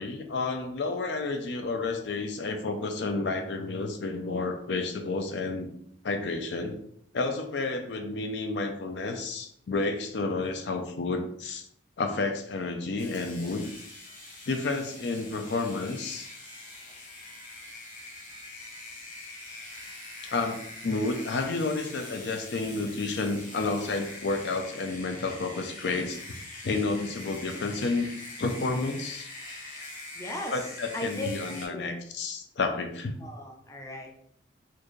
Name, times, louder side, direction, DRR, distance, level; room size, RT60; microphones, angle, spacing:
voice 1, 0.0-5.7 6.0-6.8 7.1-11.7 12.0-13.7 14.5-16.3 20.2-26.2 26.6-28.1 28.4-29.3 30.5-33.2, left 3 dB, 65° left, 5 dB, 0.5 m, -30 dB
sound 1, 13.0-31.7, left 2 dB, 45° left, 1.0 m, -44 dB
voice 2, 30.1-30.6 30.9-31.3 31.7-31.9 33.2-34.1, left 2 dB, 15° left, 1 dB, 0.5 m, -36 dB
4.3 x 2.6 x 3.1 m, 0.67 s
head